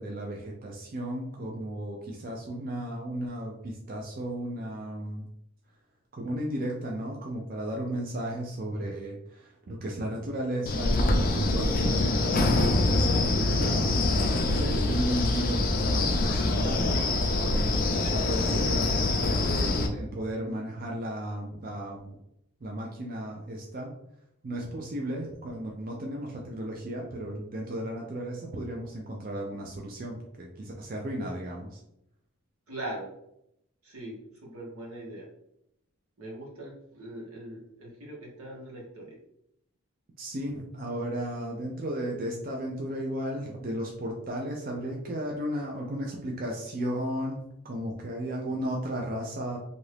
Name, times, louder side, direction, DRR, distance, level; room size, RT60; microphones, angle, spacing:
voice 1, 0.0-5.2 6.1-13.8 14.5-18.9 19.4-22.2 22.6-23.9 24.4-31.8 40.2-47.4 47.6-49.6, right 1 dB, 40° right, -1 dB, 0.4 m, -34 dB
Wind, 10.7-19.9, left 2 dB, 40° left, 0.4 m, -25 dB
voice 2, 32.7-33.1 33.8-35.3 36.2-39.2, right 1 dB, 85° right, -3 dB, 1.2 m, -41 dB
2.7 x 2.5 x 3.3 m, 0.79 s
head